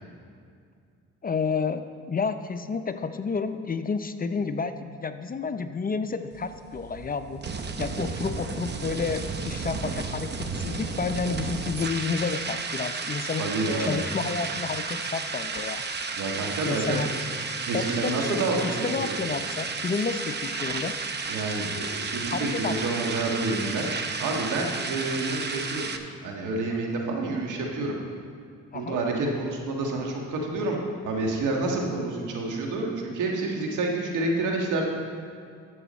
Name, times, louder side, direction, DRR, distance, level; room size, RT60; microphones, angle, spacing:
voice 1, 1.2-7.4 7.8-15.8 16.7-17.1 17.7-20.9 22.3-22.8 28.7-29.0, left 5 dB, 30° left, 9 dB, 0.5 m, -30 dB
sound 1, 6.3-26.0, right 4 dB, 35° right, 0.8 m, -33 dB
voice 2, 13.4-14.0 16.2-17.0 17.7-19.2 21.3-23.9 24.2-25.9 26.2-28.0 28.7-30.8 31.0-34.8, right 2 dB, 75° right, 0 dB, 1.7 m, -28 dB
13.0 x 7.1 x 4.2 m, 2.3 s
cardioid pair, 75°, 31 cm